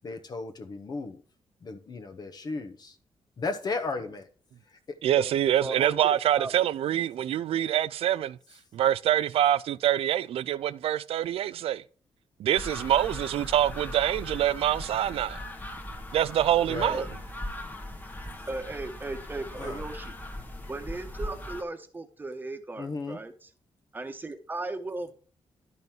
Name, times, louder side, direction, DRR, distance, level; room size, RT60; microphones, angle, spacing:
voice 1, 0.0-1.2 1.6-3.0 3.4-4.2 4.7-4.8 16.7-17.0 19.6-19.9 22.8-23.2, left 3 dB, 45° left, 1.1 m, -35 dB
voice 2, 5.0-8.4 8.7-11.8 12.4-15.4 16.1-17.1, right 11 dB, 80° right, 0.4 m, -25 dB
voice 3, 5.6-6.5 16.9-17.1 18.5-20.2 20.7-23.5 23.9-25.1, right 2 dB, 20° right, 1.2 m, -36 dB
sound 1, 12.5-21.6, left 1 dB, 15° left, 1.2 m, -39 dB
11.0 x 5.5 x 4.4 m
wide cardioid pair, 135°, 10 cm